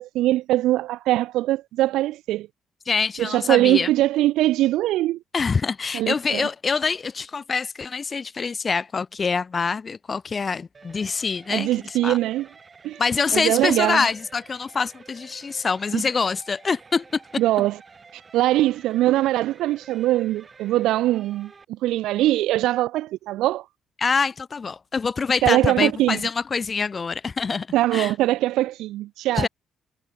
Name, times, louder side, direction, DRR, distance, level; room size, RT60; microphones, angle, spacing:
voice 1, 0.0-2.5 3.2-5.2 5.9-6.5 11.5-12.5 12.8-13.0 13.3-14.1 15.9-16.0 17.4-17.8 18.1-21.5 21.8-23.6 25.4-26.2 27.7-29.5, right 15 dB, 90° right, 0.8 m, -22 dB
voice 2, 2.9-3.9 5.3-12.2 13.0-17.2 24.0-27.7 27.9-28.1 29.4-29.5, left 5 dB, 35° left, 0.4 m, -25 dB
sound 1, 10.7-21.6, right 4 dB, 35° right, 3.6 m, -50 dB
cardioid pair, 90°, 0 cm